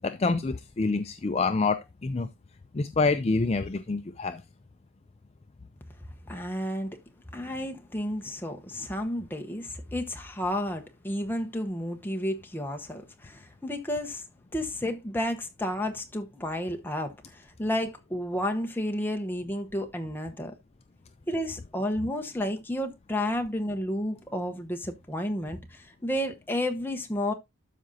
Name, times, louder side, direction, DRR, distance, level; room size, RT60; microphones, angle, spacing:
voice 1, 0.0-2.3 2.7-4.4, left 3 dB, 30° left, 0.4 m, -27 dB
voice 2, 6.3-7.0 7.3-14.2 14.5-17.1 17.6-20.5 21.3-27.3, left 1 dB, 10° left, 0.9 m, -31 dB
12.5 x 5.1 x 2.7 m
head